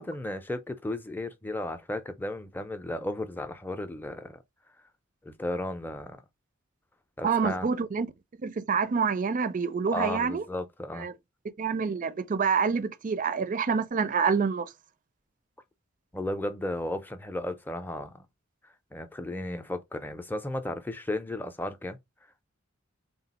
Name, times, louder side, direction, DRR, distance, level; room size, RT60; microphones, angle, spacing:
voice 1, 0.0-4.4 5.2-6.2 7.2-7.7 9.9-11.1 16.1-18.3 18.9-22.0, left 1 dB, 10° left, 0.6 m, -34 dB
voice 2, 7.2-8.1 8.4-10.4 11.0-11.1 11.6-14.7, right 5 dB, 40° right, 0.4 m, -27 dB
3.8 x 2.4 x 4.1 m
head